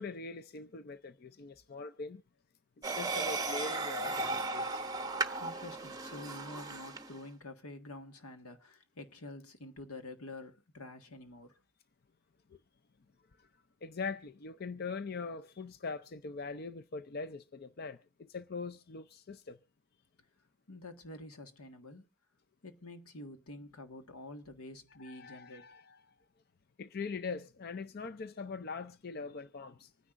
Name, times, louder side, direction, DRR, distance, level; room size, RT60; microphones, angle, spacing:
voice 1, 0.0-2.2 2.8-4.8 12.5-12.6 13.4-13.5 13.8-19.6 25.0-26.1 26.8-29.9, left 4 dB, 45° left, 0.5 m, -42 dB
sound 1, 2.8-7.2, right 3 dB, 15° right, 0.9 m, -36 dB
voice 2, 5.4-11.6 20.7-22.1 22.6-25.7, left 2 dB, 90° left, 1.6 m, -48 dB
25.5 x 10.0 x 2.5 m
head